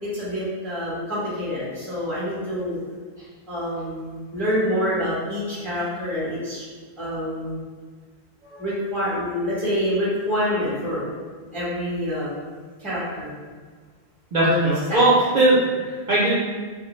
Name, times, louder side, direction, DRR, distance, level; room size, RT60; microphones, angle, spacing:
voice 1, 0.0-2.8 3.5-6.6 7.0-7.6 8.4-11.0 11.5-12.3 12.8-13.3 14.4-15.0, equal, ahead, -9 dB, 0.6 m, -27 dB
voice 2, 14.3-16.4, right 2 dB, 60° right, -8 dB, 0.6 m, -19 dB
2.1 x 2.0 x 2.9 m, 1.5 s
omnidirectional pair, 1.1 m